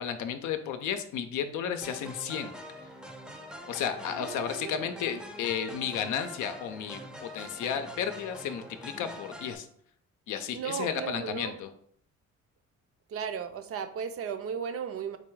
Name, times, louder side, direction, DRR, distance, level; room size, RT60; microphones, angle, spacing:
voice 1, 0.0-2.6 3.7-9.7 10.3-11.7, left 8 dB, 80° left, 8 dB, 0.5 m, -33 dB
sound 1, 1.8-9.6, left 1 dB, ahead, 0.5 m, -44 dB
voice 2, 4.1-4.8 10.5-11.6 13.1-15.2, right 7 dB, 50° right, 10 dB, 0.5 m, -36 dB
4.1 x 2.3 x 4.5 m, 0.65 s
cardioid pair, 90°, 30 cm